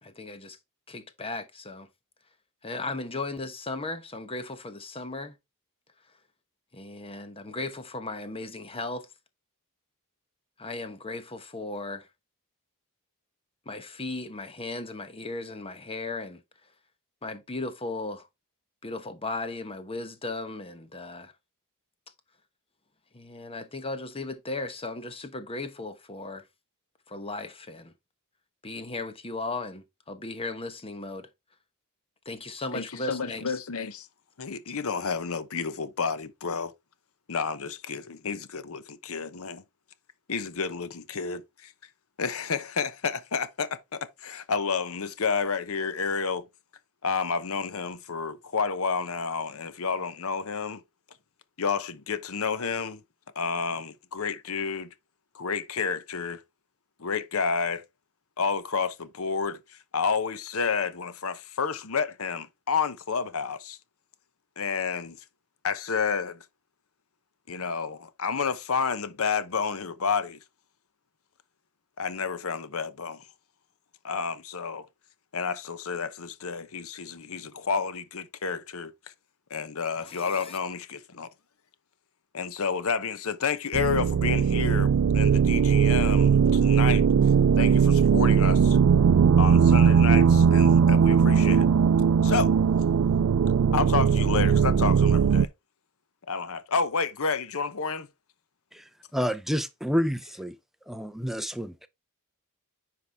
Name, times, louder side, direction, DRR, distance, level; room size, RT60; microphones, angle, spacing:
voice 1, 0.0-0.6 0.9-1.9 2.6-5.4 6.7-9.1 10.6-12.1 13.7-16.4 17.2-18.3 18.8-21.3 23.1-26.4 27.1-27.9 28.6-31.3 32.2-33.6 80.0-80.6, left 2 dB, 25° left, 1.1 m, -36 dB
voice 2, 32.7-34.1 34.4-36.7 37.3-39.6 40.3-41.7 42.2-46.5 47.0-50.8 51.6-53.0 53.4-54.9 55.3-56.4 57.0-57.8 58.4-63.8 64.6-65.2 65.6-66.4 67.5-70.4 72.0-73.2 74.0-74.9 75.3-78.9 79.5-81.3 82.3-87.0 87.6-88.8 89.4-91.7 92.2-92.5 93.7-95.5 96.3-98.1, left 5 dB, 65° left, 0.9 m, -30 dB
sound 1, 83.7-95.5, right 6 dB, 85° right, 0.4 m, -20 dB
voice 3, 98.7-100.6 100.9-101.9, equal, ahead, 0.6 m, -29 dB
9.7 x 4.8 x 3.5 m
head